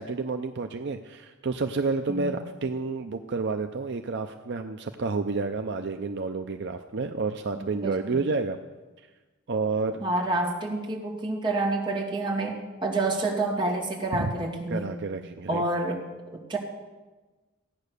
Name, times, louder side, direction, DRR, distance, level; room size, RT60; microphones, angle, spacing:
voice 1, 0.0-8.6 9.5-10.0 14.1-14.3 14.7-15.6, right 4 dB, 60° right, 7 dB, 0.6 m, -30 dB
voice 2, 7.5-8.2 10.0-14.9 15.5-16.0 16.3-16.6, right 2 dB, 25° right, -3 dB, 2.7 m, -28 dB
16.0 x 9.4 x 6.7 m, 1.2 s
head